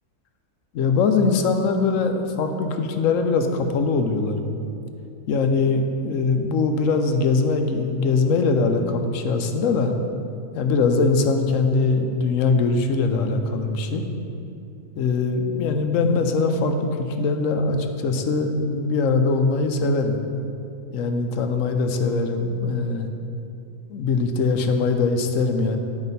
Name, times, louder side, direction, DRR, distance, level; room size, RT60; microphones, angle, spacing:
voice 1, 0.7-4.5 5.3-9.9 10.5-14.0 15.0-20.2 20.9-23.1 23.9-25.8, left 4 dB, 75° left, 6 dB, 1.0 m, -22 dB
11.0 x 4.9 x 4.1 m, 2.6 s
omnidirectional pair, 1.4 m